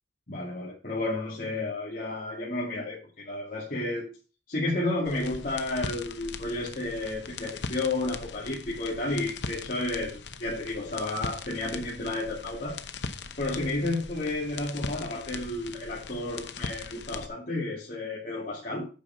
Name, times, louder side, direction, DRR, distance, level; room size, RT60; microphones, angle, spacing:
voice 1, 0.3-4.1 4.5-12.8 13.4-18.9, left 2 dB, 50° left, -6 dB, 2.3 m, -32 dB
sound 1, 5.1-17.3, left 4 dB, 80° left, 0.9 m, -40 dB
8.3 x 5.8 x 5.7 m, 0.34 s
head